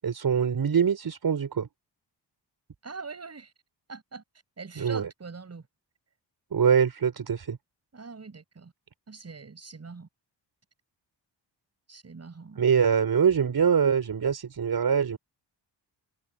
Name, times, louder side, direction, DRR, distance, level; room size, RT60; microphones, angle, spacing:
voice 1, 0.0-1.7 4.8-5.1 6.5-7.6 12.6-15.2, right 7 dB, 55° right, 5.0 m, -24 dB
voice 2, 2.8-3.5 3.9-4.2 4.6-5.6 7.9-8.7 9.1-10.1 11.9-12.6, right 4 dB, 35° right, 6.9 m, -42 dB
wide cardioid pair, 140°, 44 cm